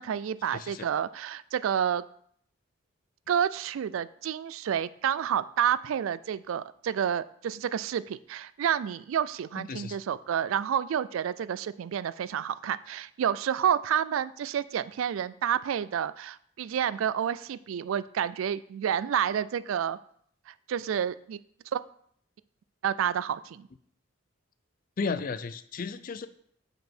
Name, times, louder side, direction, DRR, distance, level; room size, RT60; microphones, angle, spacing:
voice 1, 0.0-2.0 3.3-20.0 20.5-21.4 21.7-21.8 22.8-23.7, right 9 dB, 80° right, 17 dB, 0.3 m, -29 dB
voice 2, 0.5-0.9 9.6-10.0 25.0-26.3, left 4 dB, 45° left, 13 dB, 0.4 m, -34 dB
6.0 x 5.3 x 4.5 m, 0.64 s
head